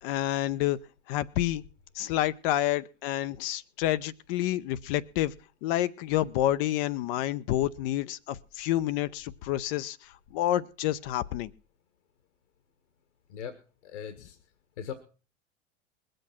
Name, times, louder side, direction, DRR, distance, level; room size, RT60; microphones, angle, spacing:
voice 1, 0.0-0.8 1.1-1.6 2.0-5.3 5.6-10.0 10.3-11.5, left 13 dB, 50° left, 13 dB, 0.7 m, -28 dB
voice 2, 13.8-14.4 14.8-14.9, left 8 dB, 70° left, 10 dB, 1.6 m, -39 dB
21.0 x 7.8 x 5.9 m, 0.37 s
figure-of-eight pair, 80°, 36 cm